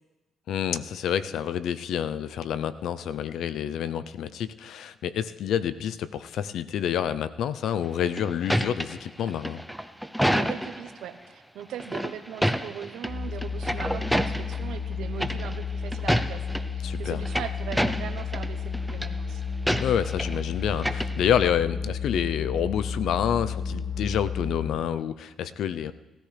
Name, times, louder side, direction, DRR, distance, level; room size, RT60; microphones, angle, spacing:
voice 1, 0.5-9.6 16.8-17.2 19.8-25.9, left 9 dB, 75° left, 14 dB, 0.5 m, -28 dB
sound 1, 7.8-10.9 11.8-13.1 13.4-14.6 15.2-15.6 15.9-16.6 17.0-18.5 18.7-19.1 19.7-20.4 20.7-21.5, equal, ahead, 0.6 m, -28 dB
voice 2, 10.3-16.4 16.7-19.4, right 10 dB, 80° right, 10 dB, 0.9 m, -39 dB
sound 2, 13.1-24.7, left 5 dB, 45° left, 4.2 m, -32 dB
18.0 x 13.5 x 3.3 m, 1.1 s
cardioid pair, 90°, 0 cm